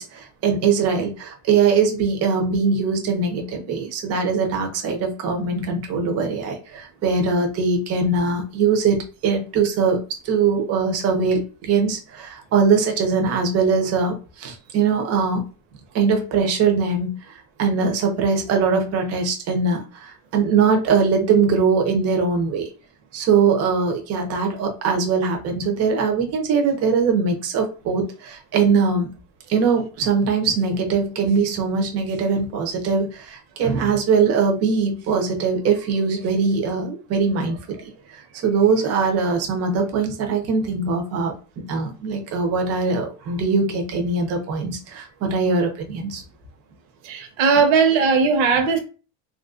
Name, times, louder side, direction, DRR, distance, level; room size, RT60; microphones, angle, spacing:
voice 1, 0.0-15.5 15.9-22.7 23.1-29.1 29.5-37.8 38.1-46.2, right 5 dB, 35° right, 0.6 m, -21 dB
voice 2, 47.0-48.8, right 5 dB, 80° right, 0.9 m, -18 dB
3.4 x 2.4 x 2.4 m
cardioid pair, 160°, 44 cm